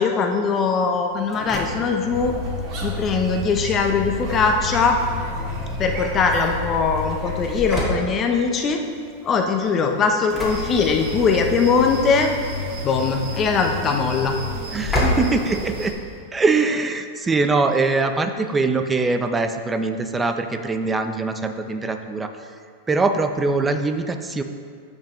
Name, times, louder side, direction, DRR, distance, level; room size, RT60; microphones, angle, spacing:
voice 1, 0.0-2.3 2.8-5.0 5.8-8.8 9.2-12.3 12.8-14.4, left 5 dB, 30° left, 4 dB, 0.7 m, -21 dB
Engine / Slam, 1.1-16.2, left 3 dB, 10° left, 2.1 m, -31 dB
sound 1, 2.1-7.9, right 2 dB, 40° right, 1.9 m, -32 dB
sound 2, 10.4-15.9, right 2 dB, 65° right, 1.6 m, -33 dB
voice 2, 14.7-15.9 16.3-22.3 22.9-24.4, right 3 dB, 15° right, 7 dB, 0.6 m, -22 dB
14.5 x 5.4 x 3.1 m, 2.1 s
supercardioid pair, 130°, 0 cm